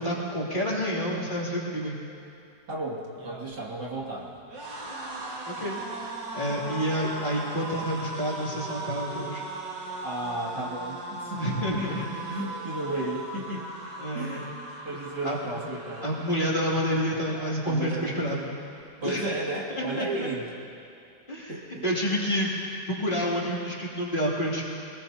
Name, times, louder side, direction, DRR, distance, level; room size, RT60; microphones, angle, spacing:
voice 1, 0.0-2.0 5.5-5.8 6.3-9.4 11.4-12.0 14.0-14.5 15.2-15.4 16.0-18.5 19.0-19.3 19.7-20.3 21.3-21.5 21.8-22.5 22.9-24.6, equal, 25° left, -6 dB, 2.9 m, -28 dB
voice 2, 2.7-4.3 10.0-13.7 14.1-14.5 14.8-16.1 17.6-18.6 19.0-20.5 21.5-21.8, right 2 dB, 70° right, -5 dB, 3.1 m, -34 dB
sound 1, 3.0-18.2 18.6-18.8 19.1-19.9, right 2 dB, 85° right, 2.3 m, -39 dB
24.5 x 20.5 x 2.8 m, 2.5 s
omnidirectional pair, 1.9 m